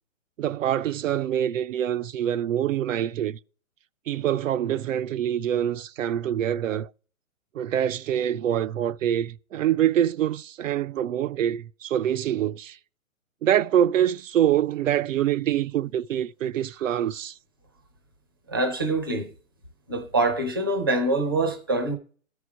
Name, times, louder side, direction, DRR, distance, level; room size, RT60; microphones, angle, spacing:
voice 1, 0.4-3.4 4.1-6.9 7.5-12.8 13.4-17.3, right 10 dB, 70° right, 0.5 m, -25 dB
voice 2, 18.5-19.3 19.9-21.9, right 2 dB, 20° right, 0.5 m, -25 dB
13.5 x 4.8 x 4.9 m
hypercardioid pair, 170°, 41 cm